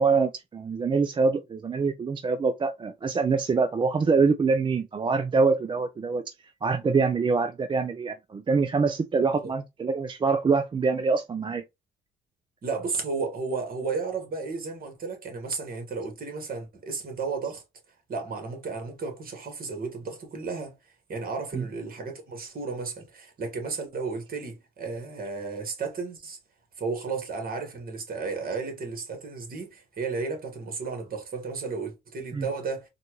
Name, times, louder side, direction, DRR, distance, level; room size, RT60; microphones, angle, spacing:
voice 1, 0.0-6.2 6.6-11.6 21.5-21.7 32.3-32.5, right 4 dB, 25° right, 0.4 m, -25 dB
voice 2, 12.6-17.6 18.1-26.4 26.8-32.9, right 4 dB, 45° right, 1.4 m, -33 dB
4.1 x 2.2 x 3.0 m
cardioid pair, 90°, 20 cm